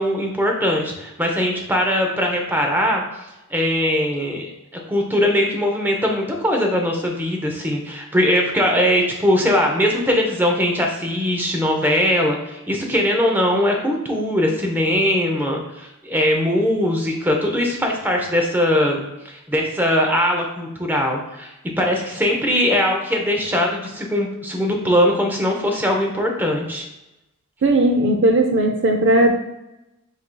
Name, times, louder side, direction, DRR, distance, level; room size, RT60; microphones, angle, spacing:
voice 1, 0.0-3.0 3.5-4.5 4.9-26.8, equal, 10° right, 1 dB, 0.6 m, -20 dB
voice 2, 27.6-29.3, right 1 dB, 55° right, 4 dB, 0.4 m, -16 dB
7.4 x 2.7 x 2.2 m, 0.95 s
head